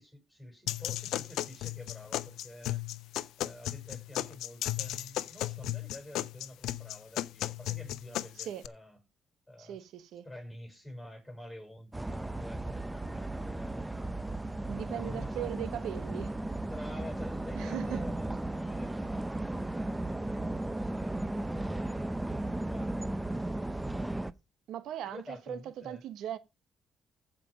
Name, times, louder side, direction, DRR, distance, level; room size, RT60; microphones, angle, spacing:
voice 1, 0.0-2.9 3.4-9.0 9.5-9.9 10.2-14.1 14.6-15.5 16.7-24.2 25.0-26.1, left 1 dB, 10° left, 7.1 m, -48 dB
sound 1, 0.7-8.7, left 14 dB, 85° left, 0.5 m, -35 dB
voice 2, 9.6-10.2 14.7-16.3 17.5-18.0 24.7-26.4, right 11 dB, 80° right, 1.0 m, -39 dB
sound 2, 11.9-24.3, right 2 dB, 10° right, 0.6 m, -35 dB
15.0 x 5.2 x 5.1 m
cardioid pair, 90°, 0 cm